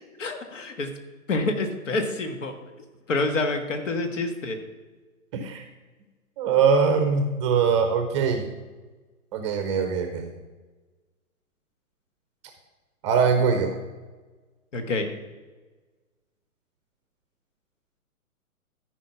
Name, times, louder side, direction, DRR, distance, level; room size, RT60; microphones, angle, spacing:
voice 1, 0.2-0.9 1.3-2.5 3.1-4.6 14.7-15.1, left 2 dB, 55° left, 7 dB, 1.6 m, -27 dB
voice 2, 5.3-5.7 6.4-8.5 9.3-10.3 13.0-13.7, right 6 dB, 20° right, 5 dB, 0.7 m, -22 dB
13.5 x 4.8 x 5.8 m, 1.3 s
figure-of-eight pair, 130°, 44 cm